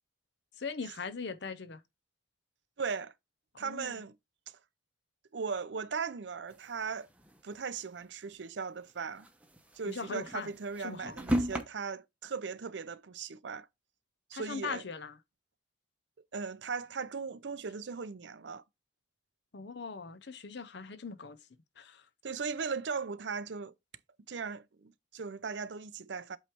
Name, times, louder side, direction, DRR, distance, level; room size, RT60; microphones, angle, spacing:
voice 1, 0.6-1.8 3.5-4.0 9.9-10.5 10.8-11.1 14.3-15.1 19.5-21.4 21.8-22.1, left 5 dB, 60° left, 0.8 m, -40 dB
voice 2, 2.8-3.1 3.6-4.2 4.5-4.6 5.3-7.1 7.4-9.3 9.7-13.7 14.3-14.8 16.3-18.6 22.2-23.7 24.3-26.4, right 5 dB, 65° right, 0.5 m, -38 dB
sound 1, 6.5-7.6 8.0-8.1 8.3-8.4 9.0-11.6, equal, 5° right, 0.9 m, -35 dB
8.1 x 3.2 x 4.5 m
head